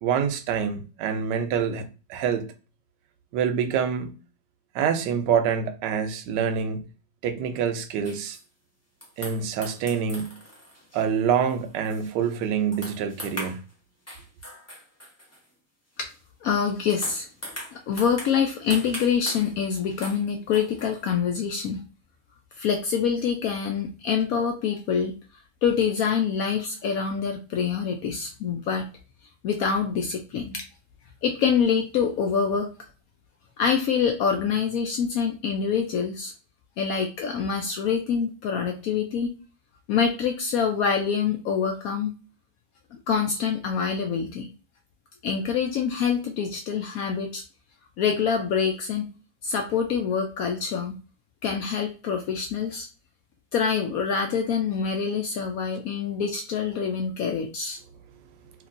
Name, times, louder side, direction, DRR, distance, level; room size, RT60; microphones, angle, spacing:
voice 1, 0.0-2.5 3.3-4.1 4.7-6.8 7.2-8.4 9.2-10.4 10.9-13.6, right 7 dB, 75° right, 1.2 m, -26 dB
sound 1, 8.0-8.4 9.0-12.5 12.7-13.7 14.1-15.4 16.1-16.2 16.7-20.3 20.5-21.1, equal, 15° left, 0.6 m, -40 dB
voice 2, 16.4-17.3 17.7-21.8 22.6-25.2 25.6-28.8 29.4-30.6 31.2-32.7 33.6-36.3 36.8-39.3 39.9-42.1 42.9-44.5 45.2-47.4 48.0-49.1 49.4-50.9 51.4-52.9 53.5-57.8, left 6 dB, 75° left, 0.8 m, -25 dB
2.9 x 2.9 x 2.5 m
omnidirectional pair, 1.9 m